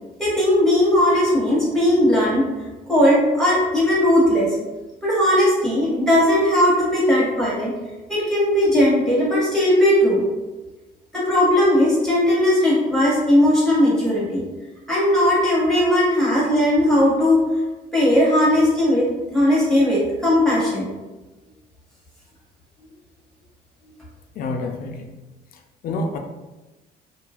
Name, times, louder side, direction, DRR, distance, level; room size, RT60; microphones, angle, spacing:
voice 1, 0.2-2.4 2.9-4.5 5.0-7.7 8.1-10.2 11.1-14.4 14.9-17.4 17.9-20.9, left 1 dB, 5° left, -7 dB, 1.2 m, -18 dB
voice 2, 24.4-25.2 25.8-26.2, left 2 dB, 60° left, 3 dB, 0.5 m, -28 dB
2.9 x 2.3 x 2.8 m, 1.1 s
cardioid pair, 110°, 17 cm